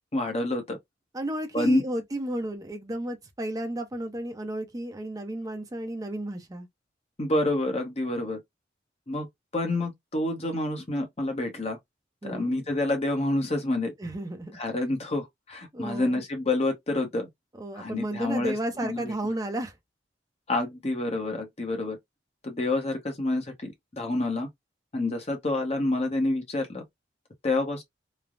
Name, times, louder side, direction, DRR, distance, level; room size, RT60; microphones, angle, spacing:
voice 1, 0.1-0.8 1.5-1.8 7.2-8.4 9.1-9.3 9.5-11.8 12.2-13.9 14.6-17.3 17.8-18.5 18.8-19.1 20.5-22.0 22.4-24.5 24.9-26.8 27.4-27.8, left 2 dB, 35° left, 0.8 m, -28 dB
voice 2, 1.1-6.7 12.2-12.5 14.0-14.5 15.7-16.2 17.6-19.7, right 1 dB, 20° right, 0.5 m, -33 dB
3.2 x 2.0 x 2.4 m
head